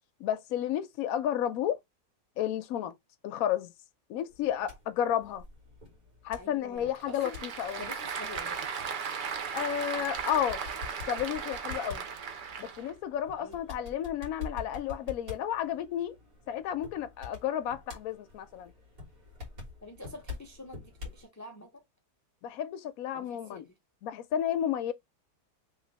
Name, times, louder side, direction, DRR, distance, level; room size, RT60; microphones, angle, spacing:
voice 1, 0.2-1.8 2.4-2.9 3.2-3.7 4.1-5.4 6.2-7.8 9.5-10.6 11.1-12.0 12.6-16.2 16.5-18.7 22.4-23.6 24.0-24.9, left 10 dB, 70° left, 1.0 m, -32 dB
sound 1, 4.3-21.3, left 5 dB, 65° right, 2.1 m, -47 dB
voice 2, 6.4-7.5 7.8-8.6 13.4-13.6 19.8-21.8 23.1-23.6, left 1 dB, 20° left, 0.5 m, -47 dB
Applause / Crowd, 6.7-12.9, right 6 dB, 85° right, 0.4 m, -36 dB
3.2 x 3.1 x 3.9 m
omnidirectional pair, 1.6 m